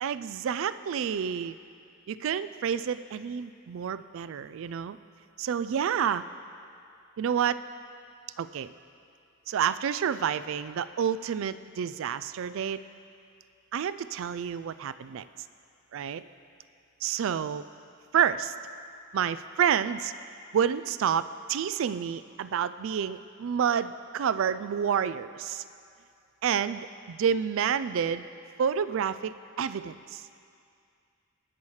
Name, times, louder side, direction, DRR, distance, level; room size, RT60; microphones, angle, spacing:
voice 1, 0.0-1.6 2.1-5.0 5.4-6.2 7.2-7.6 8.4-8.7 9.5-12.8 13.7-15.2 15.9-16.2 17.0-17.6 18.1-18.5 19.1-20.1 20.5-25.6 26.4-28.3 28.6-30.2, right 8 dB, 65° right, 14 dB, 0.3 m, -29 dB
20.5 x 7.1 x 3.2 m, 2.4 s
head